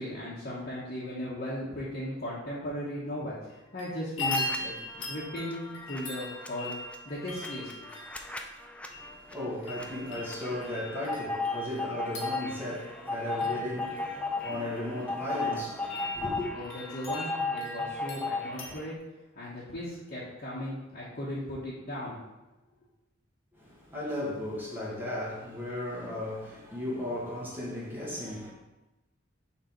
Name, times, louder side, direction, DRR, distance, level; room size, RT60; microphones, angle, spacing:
voice 1, 0.0-6.7 7.0-7.9 16.5-18.9 19.3-22.3, equal, 45° left, 1.3 m, -37 dB
sound 1, 3.5-3.9 4.2-18.7, left 1 dB, 70° left, 1.3 m, -41 dB
sound 2, 4.2-4.6 4.9-18.9, left 3 dB, 5° left, 0.4 m, -36 dB
voice 2, 8.9-16.5 23.5-28.5, left 1 dB, 10° right, 1.5 m, -36 dB
6.5 x 3.7 x 4.6 m
head